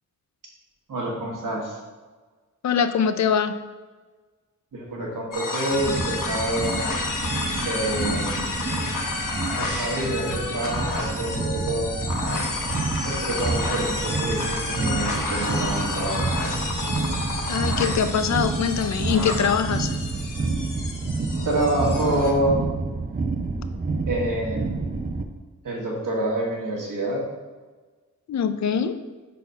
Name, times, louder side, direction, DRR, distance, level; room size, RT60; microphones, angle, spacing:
voice 1, 0.9-1.8 4.7-6.9 7.6-8.7 9.5-12.0 13.0-16.2 21.4-22.6 24.0-24.9 25.6-27.2, right 1 dB, 90° right, -2 dB, 1.5 m, -27 dB
voice 2, 2.6-3.5 17.5-20.0 28.3-29.0, left 7 dB, 60° left, 10 dB, 0.5 m, -23 dB
sound 1, 5.3-22.3, left 3 dB, 85° left, 1.0 m, -30 dB
sound 2, 5.7-25.2, right 3 dB, 30° right, 0.5 m, -29 dB
5.6 x 4.2 x 5.3 m, 1.3 s
wide cardioid pair, 90°, 31 cm